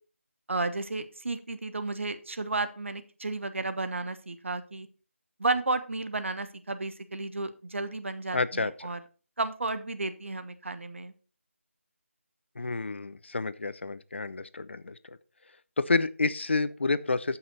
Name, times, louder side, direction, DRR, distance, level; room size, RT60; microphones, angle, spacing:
voice 1, 0.5-4.9 5.4-9.0 9.4-11.1, right 3 dB, 60° right, 11 dB, 1.2 m, -32 dB
voice 2, 8.3-8.9 12.6-15.2 15.8-17.4, left 3 dB, 55° left, 15 dB, 0.7 m, -29 dB
13.0 x 5.9 x 4.1 m, 0.37 s
figure-of-eight pair, 170°, 8 cm